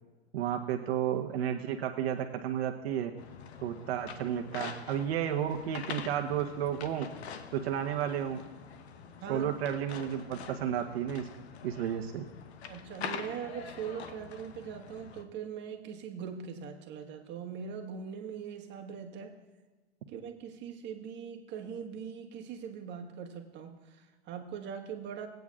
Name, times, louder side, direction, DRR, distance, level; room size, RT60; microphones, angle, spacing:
voice 1, 0.3-3.1 3.6-7.1 7.5-8.4 9.3-11.3 11.6-12.2, right 9 dB, 70° right, 4 dB, 1.0 m, -32 dB
sound 1, 3.2-15.2, left 6 dB, 75° left, 1.1 m, -45 dB
voice 2, 9.2-9.5 12.7-19.4 20.1-25.3, right 7 dB, 35° right, 3 dB, 1.5 m, -41 dB
19.0 x 9.2 x 2.4 m, 1.3 s
hypercardioid pair, 120°, 32 cm